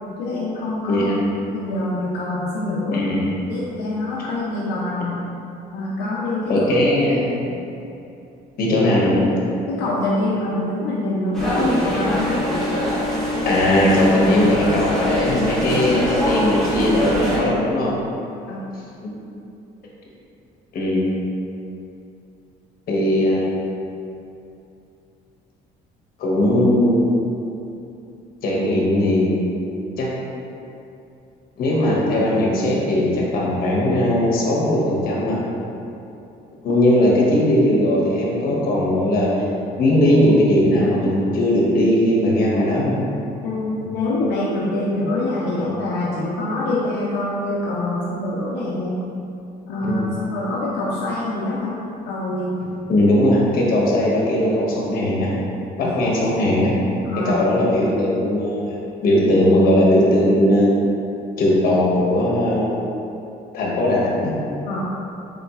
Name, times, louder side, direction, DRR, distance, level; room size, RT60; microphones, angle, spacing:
voice 1, 0.2-1.1 1.5-3.0 3.5-5.2 5.7-6.7 7.5-7.6 9.7-12.4 18.5-18.6 43.4-49.0 49.7-51.8 52.1-52.6 55.8-56.0 57.0-57.4 64.6-64.8, left 2 dB, 85° left, -6 dB, 0.5 m, -25 dB
voice 2, 0.9-1.3 2.9-3.3 6.5-7.4 8.6-9.3 13.4-17.9 19.0-19.1 20.7-21.1 22.9-23.7 26.2-27.1 28.4-29.5 30.0-30.1 31.6-35.4 36.6-39.4 39.8-43.0 49.8-50.1 52.9-55.3 55.8-56.7 57.2-60.8 61.4-62.8 63.5-64.3, left 1 dB, 60° left, -4 dB, 0.9 m, -18 dB
sound 1, 11.3-17.4, equal, 5° left, 1.1 m, -23 dB
4.0 x 3.6 x 2.4 m, 2.7 s
cardioid pair, 110°, 17 cm